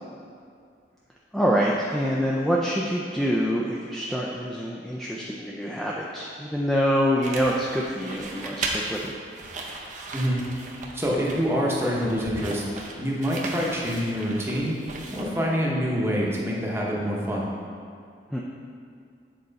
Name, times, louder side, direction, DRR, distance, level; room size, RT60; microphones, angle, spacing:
voice 1, 1.3-9.1 18.3-18.4, equal, ahead, -4 dB, 0.4 m, -26 dB
sound 1, 7.2-15.6, right 3 dB, 45° right, 0.6 m, -37 dB
voice 2, 10.1-10.4 10.9-12.7 13.0-14.7 15.1-17.5, equal, 15° right, -4 dB, 0.9 m, -26 dB
7.7 x 4.3 x 4.0 m, 2.3 s
head